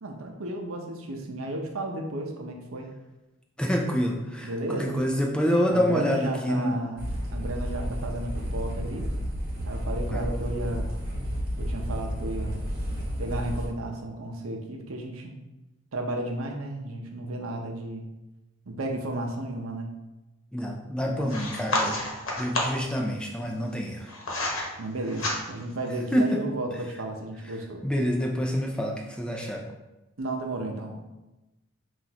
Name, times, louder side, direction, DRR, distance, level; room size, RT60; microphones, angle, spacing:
voice 1, 0.0-2.9 4.4-5.0 5.7-9.1 9.7-10.9 11.6-12.6 13.2-15.4 15.9-18.1 18.7-19.9 21.0-21.3 24.8-27.8 30.2-31.0, right 1 dB, 80° right, 2 dB, 0.7 m, -33 dB
voice 2, 3.6-6.8 10.1-10.3 20.5-22.0 22.4-24.1 26.1-26.4 27.8-29.6, equal, 5° left, 0 dB, 0.4 m, -27 dB
sound 1, 7.0-13.6, equal, 45° right, 1.2 m, -31 dB
sound 2, 21.3-22.9 23.7-24.7 25.0-25.7, left 2 dB, 70° left, 1.0 m, -30 dB
5.9 x 2.5 x 2.8 m, 1.0 s
head